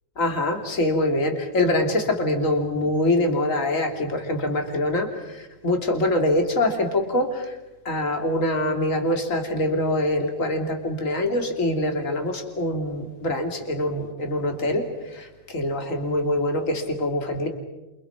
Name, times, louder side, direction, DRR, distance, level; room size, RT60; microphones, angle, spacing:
voice 1, 0.2-7.5 7.8-17.5, left 1 dB, 25° left, 4 dB, 3.2 m, -24 dB
29.0 x 28.0 x 6.0 m, 1.0 s
omnidirectional pair, 3.5 m